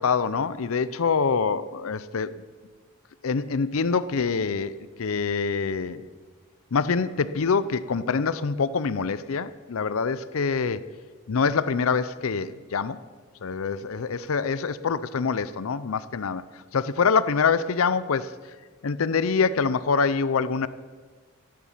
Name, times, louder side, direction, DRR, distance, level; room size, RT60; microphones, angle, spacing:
voice 1, 0.0-2.4 3.2-6.0 6.7-10.8 11.3-13.0 13.4-16.4 16.7-18.3 18.8-20.7, left 5 dB, 75° left, 15 dB, 0.6 m, -25 dB
14.0 x 10.5 x 7.3 m, 1.5 s
head